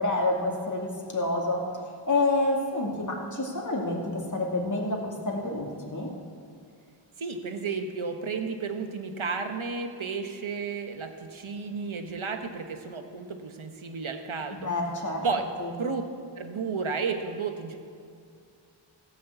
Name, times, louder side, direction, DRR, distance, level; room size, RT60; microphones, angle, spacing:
voice 1, 0.0-6.1 14.5-15.3 15.6-15.7, left 2 dB, 35° left, -1 dB, 2.4 m, -28 dB
voice 2, 7.2-14.7 15.2-15.4 15.8-16.1 16.3-17.8, right 4 dB, 70° right, 6 dB, 1.3 m, -32 dB
15.5 x 6.4 x 8.1 m, 2.3 s
wide cardioid pair, 65°, 50 cm